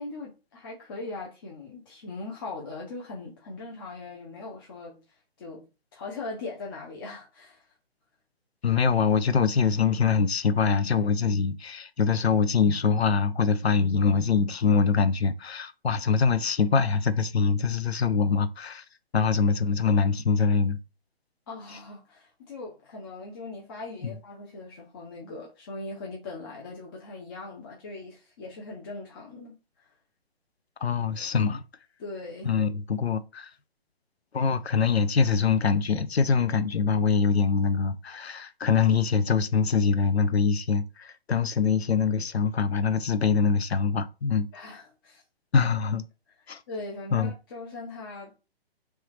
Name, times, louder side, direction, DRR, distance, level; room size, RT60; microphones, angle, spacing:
voice 1, 0.0-5.7 5.9-7.7 21.5-29.9 32.0-32.5 44.5-45.2 46.7-48.4, left 3 dB, 25° left, 0.6 m, -40 dB
voice 2, 8.6-18.8 19.1-20.8 24.0-24.1 30.8-31.6 32.4-33.5 34.3-44.5 45.5-46.0 46.5-46.6 47.1-47.3, left 5 dB, 85° left, 0.6 m, -24 dB
3.3 x 3.1 x 3.1 m
figure-of-eight pair, 135°, 31 cm